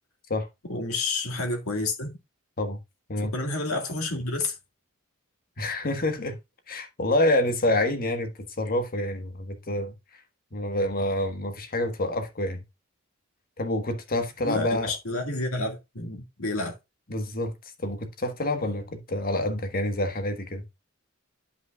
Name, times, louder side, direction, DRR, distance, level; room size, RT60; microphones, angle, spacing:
voice 1, 0.7-2.1 3.3-4.6 14.4-16.8, left 2 dB, 70° left, 2.0 m, -29 dB
voice 2, 5.6-6.4 6.7-8.3 8.6-9.9 10.5-12.6 13.6-14.9 17.1-17.5 17.8-20.6, left 1 dB, 45° left, 1.4 m, -27 dB
11.0 x 5.5 x 2.3 m
head